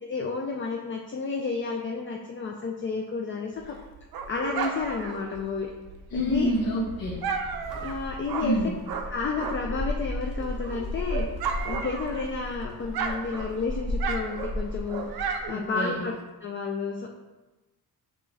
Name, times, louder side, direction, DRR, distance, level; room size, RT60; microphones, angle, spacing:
voice 1, 0.0-3.8 4.3-5.7 6.1-6.5 7.8-8.6 9.1-11.3 11.6-16.1 16.4-17.1, left 4 dB, 35° left, 0 dB, 0.4 m, -31 dB
Dog, 3.6-9.9 10.2-12.5 12.8-16.2, right 5 dB, 75° right, 0.5 m, -34 dB
voice 2, 6.1-7.2 8.4-8.7 15.5-16.0, equal, 70° left, -5 dB, 0.9 m, -27 dB
Gull seagull, 6.1-15.5, left 1 dB, ahead, 0.9 m, -35 dB
5.3 x 2.6 x 3.3 m, 1.1 s
cardioid pair, 130°, 37 cm